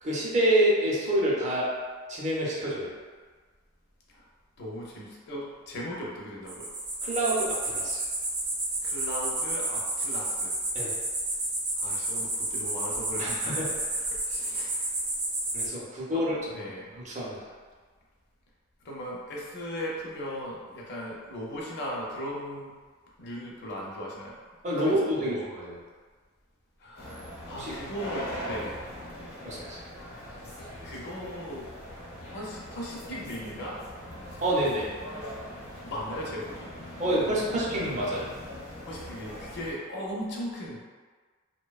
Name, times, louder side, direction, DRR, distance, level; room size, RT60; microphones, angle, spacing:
voice 1, 0.0-1.7 2.1-2.9 7.0-8.0 10.7-10.9 13.2-13.7 14.3-14.4 15.5-16.3 17.0-17.5 24.6-25.8 27.5-27.7 29.4-29.8 34.4-34.9 37.0-38.3, right 1 dB, 35° right, -5 dB, 0.5 m, -27 dB
voice 2, 4.6-6.7 8.8-10.5 11.8-13.7 14.0-14.9 16.1-16.2 16.5-17.0 18.8-22.7 23.2-24.4 24.8-25.4 26.8-28.8 30.8-31.7 32.2-33.8 35.8-36.7 38.8-40.8, equal, 55° left, -4 dB, 0.5 m, -38 dB
sound 1, 6.5-15.7, right 2 dB, 90° right, 0.6 m, -31 dB
sound 2, 27.0-39.7, equal, 85° left, 0.8 m, -41 dB
2.5 x 2.1 x 2.3 m, 1.5 s
head